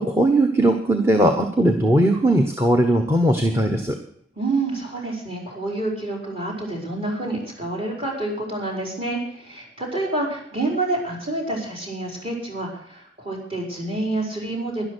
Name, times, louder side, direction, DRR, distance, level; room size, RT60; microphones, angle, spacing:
voice 1, 0.0-4.0, right 1 dB, 15° right, 4 dB, 1.2 m, -19 dB
voice 2, 4.4-14.8, right 2 dB, 30° right, 0 dB, 4.6 m, -28 dB
12.0 x 11.5 x 6.2 m, 0.64 s
head